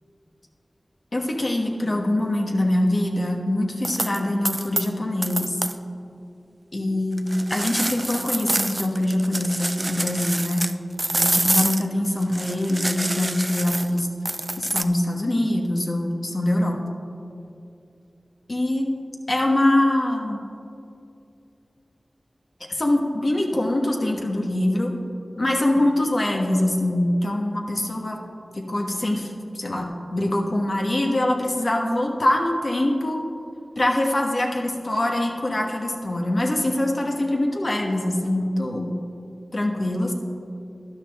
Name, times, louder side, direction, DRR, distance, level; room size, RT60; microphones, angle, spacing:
voice 1, 1.1-5.6 6.7-10.6 11.1-14.1 14.6-16.8 18.5-18.9 19.3-20.4 22.7-24.9 25.4-28.2 28.5-33.2 33.8-38.9 39.5-40.1, left 1 dB, 55° left, 1 dB, 1.3 m, -23 dB
sound 1, 3.8-4.2 4.4-4.9 5.2-5.7 7.2-10.7 11.0-14.8, right 1 dB, 30° right, 0.4 m, -26 dB
12.5 x 10.5 x 3.6 m, 2.6 s
wide cardioid pair, 50°, 0 cm